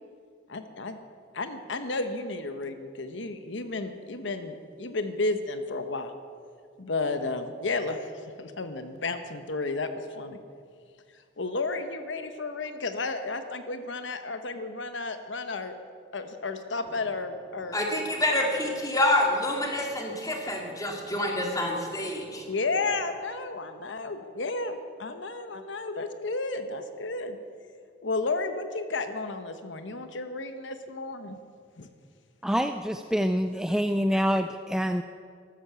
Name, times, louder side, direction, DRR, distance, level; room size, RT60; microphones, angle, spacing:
voice 1, 0.5-1.0 1.3-6.1 6.8-8.1 8.4-9.9 10.2-10.4 11.4-15.8 16.1-17.8 22.5-27.4 28.0-31.4 31.8-31.9, left 3 dB, 70° left, 9 dB, 1.0 m, -32 dB
voice 2, 17.7-22.5, left 1 dB, 20° left, 1 dB, 2.2 m, -27 dB
voice 3, 32.4-35.0, equal, 5° right, 7 dB, 0.3 m, -26 dB
13.5 x 13.0 x 6.9 m, 2.2 s
head